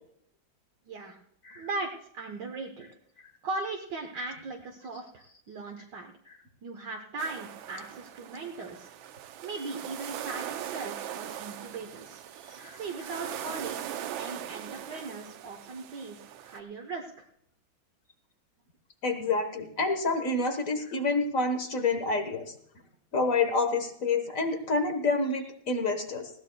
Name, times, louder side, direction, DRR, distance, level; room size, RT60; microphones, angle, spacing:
voice 1, 0.8-1.2 1.6-2.9 3.4-6.1 6.6-8.9 9.4-10.4 10.7-12.2 12.8-16.2 16.4-17.3, right 3 dB, 65° right, 1 dB, 1.7 m, -38 dB
sound 1, 7.2-16.6, right 10 dB, 80° right, 1.5 m, -40 dB
voice 2, 19.0-22.4 23.1-26.3, left 3 dB, 45° left, 7 dB, 1.6 m, -28 dB
19.5 x 16.0 x 2.3 m, 0.70 s
omnidirectional pair, 2.1 m